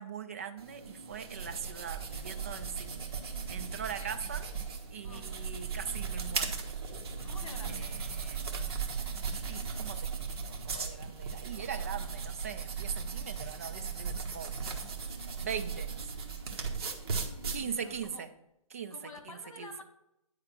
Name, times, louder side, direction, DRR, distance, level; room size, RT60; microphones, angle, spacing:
voice 1, 0.0-3.1 3.5-4.5 4.9-6.6 7.7-8.4 9.5-14.5 15.4-15.9 17.5-18.3 18.7-18.9 19.3-19.7, right 7 dB, 25° right, 8 dB, 0.4 m, -41 dB
sound 1, 0.6-18.1, right 5 dB, 45° right, 1.3 m, -37 dB
voice 2, 5.0-5.4 7.2-8.2 15.9-16.4 16.8-18.2 18.9-19.8, left 3 dB, 60° left, 6 dB, 1.7 m, -51 dB
9.9 x 3.6 x 6.0 m, 0.85 s
hypercardioid pair, 165°, 19 cm